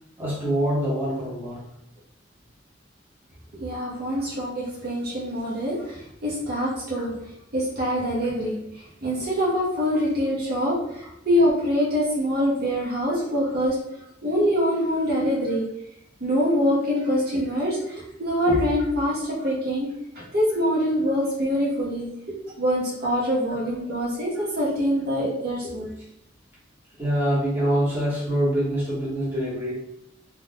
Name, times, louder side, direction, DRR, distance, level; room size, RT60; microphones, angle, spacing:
voice 1, 0.2-1.6 7.0-7.1 8.2-8.3 9.9-10.0 19.4-19.5 20.5-20.6 23.0-23.1 27.0-29.7, equal, 10° right, -8 dB, 1.0 m, -25 dB
voice 2, 3.5-7.1 7.5-13.8 14.2-15.6 16.2-25.9, equal, 55° right, -4 dB, 0.7 m, -25 dB
2.3 x 2.3 x 3.3 m, 0.78 s
head